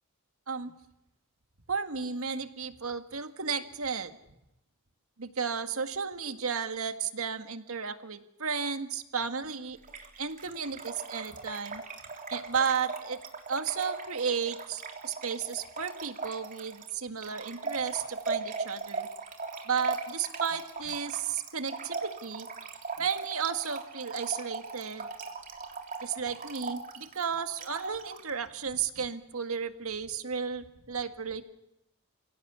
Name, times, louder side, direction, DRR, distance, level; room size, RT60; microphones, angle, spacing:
voice 1, 1.7-4.1 5.2-9.8 10.2-11.8 12.3-13.2 13.5-19.1 19.7-22.5 23.0-25.1 26.0-31.4, right 6 dB, 90° right, 8 dB, 1.9 m, -33 dB
Trickle dribble / Fill (with liquid), 9.8-28.3, right 4 dB, 40° right, 3.3 m, -39 dB
29.5 x 17.5 x 8.4 m, 0.86 s
head